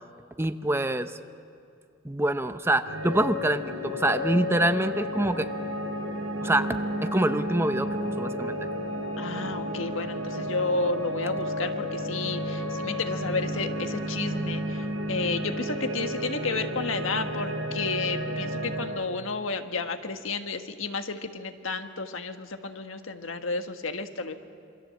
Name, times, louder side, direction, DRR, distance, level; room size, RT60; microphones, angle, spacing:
voice 1, 0.4-1.1 2.0-5.5 6.4-8.6, right 1 dB, 10° right, 10 dB, 0.7 m, -26 dB
sound 1, 2.8-18.9, equal, 85° right, 7.5 m, -32 dB
voice 2, 9.2-24.4, left 3 dB, 80° left, 7 dB, 1.6 m, -32 dB
27.0 x 25.5 x 7.7 m, 2.5 s
head